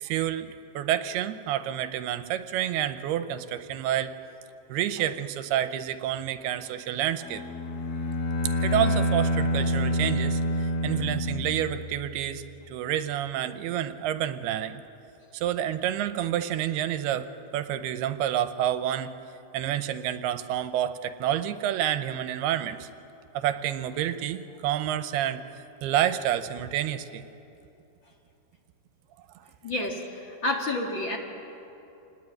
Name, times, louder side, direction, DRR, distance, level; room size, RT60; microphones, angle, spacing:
voice 1, 0.0-4.1 4.7-7.4 8.6-14.8 15.3-17.3 17.5-19.1 19.5-22.9 23.3-25.4 25.8-27.2, right 11 dB, 85° right, 11 dB, 2.7 m, -29 dB
Bowed string instrument, 7.2-12.0, left 1 dB, 60° left, 1.6 m, -27 dB
voice 2, 29.6-30.0 30.4-31.2, left 2 dB, 40° left, 1 dB, 2.0 m, -28 dB
26.5 x 19.5 x 9.2 m, 2.9 s
omnidirectional pair, 4.7 m